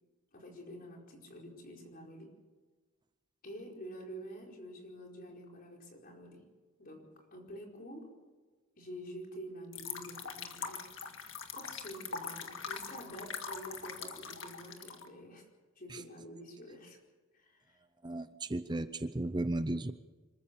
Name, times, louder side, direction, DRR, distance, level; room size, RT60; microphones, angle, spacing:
voice 1, 0.3-2.3 3.4-6.4 6.8-8.1 8.8-10.9 11.5-15.5 15.7-17.0 17.3-17.8, equal, 45° left, 0 dB, 4.8 m, -48 dB
sound 1, 9.7-15.1, left 6 dB, 75° left, 1.9 m, -42 dB
voice 2, 18.0-19.9, right 2 dB, 20° right, 12 dB, 0.6 m, -35 dB
26.0 x 14.5 x 7.0 m, 1.3 s
head